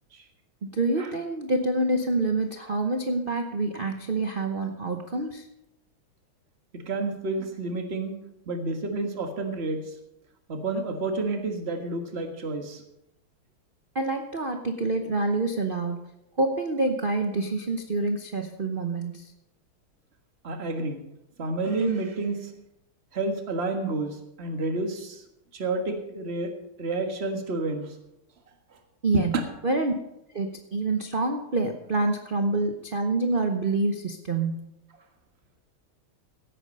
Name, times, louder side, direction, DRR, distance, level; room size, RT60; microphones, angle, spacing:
voice 1, 0.7-5.4 13.9-16.0 16.4-19.2 29.0-29.3 29.6-29.9 30.3-34.7, right 2 dB, 75° right, 5 dB, 0.4 m, -27 dB
voice 2, 6.8-8.2 8.5-9.8 10.5-12.8 20.4-21.0 21.4-22.5 23.1-25.2 25.5-26.5 26.8-27.9 29.1-29.4, right 3 dB, 30° right, 5 dB, 1.6 m, -29 dB
16.0 x 8.9 x 5.3 m, 0.86 s
omnidirectional pair, 2.4 m